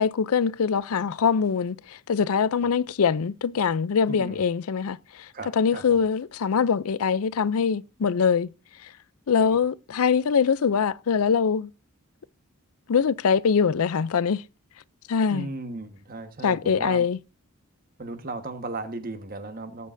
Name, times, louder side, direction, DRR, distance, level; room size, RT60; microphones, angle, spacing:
voice 1, 0.0-5.3 5.6-8.5 8.8-8.9 9.3-11.7 12.9-14.4 15.1-15.5 16.4-17.2, left 6 dB, 75° left, 0.5 m, -23 dB
voice 2, 4.1-4.4 5.3-6.0 9.4-9.6 15.3-17.1 18.0-19.9, right 2 dB, 40° right, 1.4 m, -36 dB
18.5 x 8.6 x 2.6 m
head